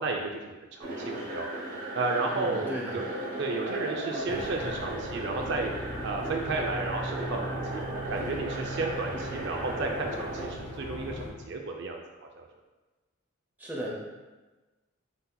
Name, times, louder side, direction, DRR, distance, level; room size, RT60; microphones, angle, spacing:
voice 1, 0.0-1.5 1.9-3.0 3.4-5.7 6.0-7.8 8.1-12.0 12.4-12.5, right 3 dB, 55° right, 2 dB, 0.3 m, -33 dB
sound 1, 0.8-10.5, right 1 dB, 40° right, 0.8 m, -36 dB
voice 2, 2.3-3.1 13.6-13.9, equal, 10° right, -3 dB, 0.6 m, -36 dB
sound 2, 4.3-11.3, right 1 dB, 15° left, 1.0 m, -39 dB
7.8 x 2.7 x 2.2 m, 1.2 s
head